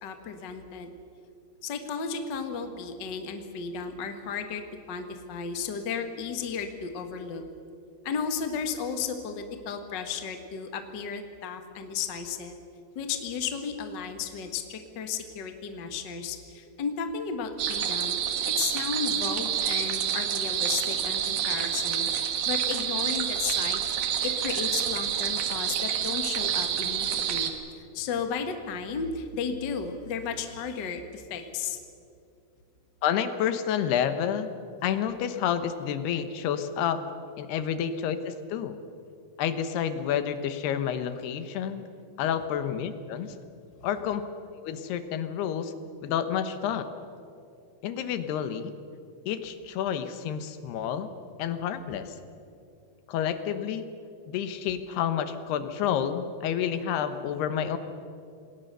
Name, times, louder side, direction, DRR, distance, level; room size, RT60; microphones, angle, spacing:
voice 1, 0.0-0.9 1.6-4.6 4.9-7.4 8.0-12.6 12.9-18.2 18.5-22.1 22.4-23.8 24.2-31.8, left 6 dB, 60° left, 6 dB, 1.1 m, -34 dB
sound 1, 17.6-27.5, right 9 dB, 65° right, 3.0 m, -28 dB
voice 2, 33.0-34.5 34.8-37.0 37.4-38.8 39.4-41.8 42.2-43.3 43.8-44.2 44.5-45.7 46.0-46.9 47.8-48.7 49.3-51.1 51.4-52.1 53.1-53.9 54.3-57.8, left 9 dB, 80° left, 10 dB, 3.1 m, -29 dB
27.5 x 19.5 x 6.8 m, 2.5 s
omnidirectional pair, 4.7 m